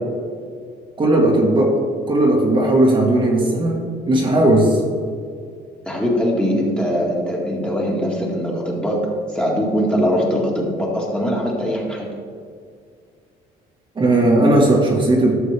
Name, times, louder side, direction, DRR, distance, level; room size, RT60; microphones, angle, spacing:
voice 1, 1.0-1.8 2.1-3.8 4.1-4.8 13.9-15.3, right 1 dB, 30° right, -2 dB, 1.6 m, -16 dB
voice 2, 5.9-12.1, equal, 5° left, -3 dB, 2.0 m, -21 dB
13.0 x 6.6 x 3.4 m, 2.1 s
cardioid pair, 110°, 17 cm